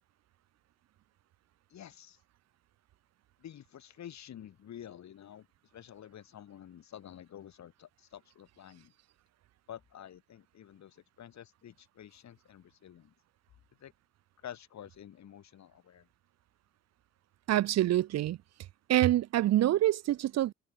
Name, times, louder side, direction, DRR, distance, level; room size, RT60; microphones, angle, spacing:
voice 1, 1.7-2.2 3.4-5.5 5.7-8.9 9.7-13.1 13.8-13.9 14.4-16.1, left 10 dB, 65° left, 4.2 m, -49 dB
voice 2, 17.5-18.4 18.9-20.5, right 13 dB, 60° right, 0.6 m, -26 dB
cardioid pair, 90°, 30 cm